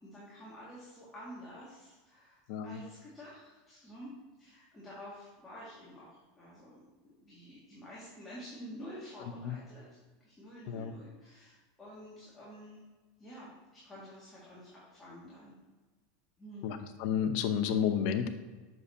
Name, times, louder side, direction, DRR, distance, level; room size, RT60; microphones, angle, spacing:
voice 1, 0.0-4.1 4.4-6.1 6.3-12.8 13.2-15.5 16.4-16.7, equal, 10° left, -8 dB, 1.9 m, -49 dB
voice 2, 16.6-18.3, left 8 dB, 55° left, 8 dB, 0.7 m, -31 dB
7.5 x 6.8 x 2.8 m, 1.3 s
supercardioid pair, 150°, 0 cm